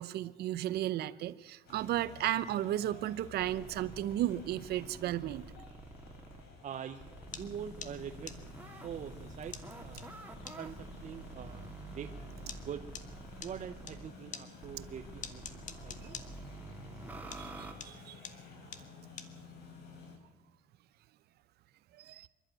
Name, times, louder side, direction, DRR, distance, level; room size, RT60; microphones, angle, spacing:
voice 1, 0.0-5.4 17.3-18.2 21.9-22.3, right 13 dB, 70° right, 16 dB, 0.9 m, -34 dB
sound 1, 1.7-20.2, left 4 dB, 85° left, 4.6 m, -53 dB
sound 2, 3.4-6.4 7.0-14.1 14.6-17.7, right 3 dB, 10° right, 2.6 m, -49 dB
voice 2, 6.6-8.5 8.8-10.1 10.6-12.8 13.4-16.2, right 8 dB, 45° right, 6 dB, 1.0 m, -44 dB
sound 3, 7.3-14.0 14.3-17.1 17.3-19.9, left 7 dB, 45° left, 1.7 m, -46 dB
26.5 x 11.5 x 9.1 m, 1.1 s
cardioid pair, 110°, 17 cm